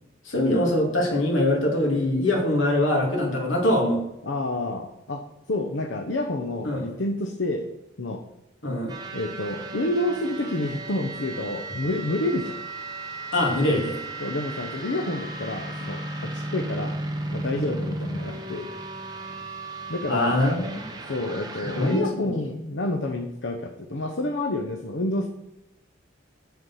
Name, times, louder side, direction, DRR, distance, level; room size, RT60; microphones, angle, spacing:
voice 1, 0.2-4.0 6.6-6.9 8.6-8.9 13.3-14.0 20.1-20.8 21.7-22.3, left 1 dB, 85° left, 0 dB, 2.7 m, -23 dB
voice 2, 4.2-7.7 8.0-8.2 9.1-12.6 14.2-17.0 17.3-18.7 19.9-20.4 21.1-25.3, left 2 dB, 70° left, 5 dB, 0.8 m, -29 dB
sound 1, 8.9-22.0, right 2 dB, 20° right, 1.0 m, -35 dB
8.1 x 7.2 x 5.7 m, 0.91 s
head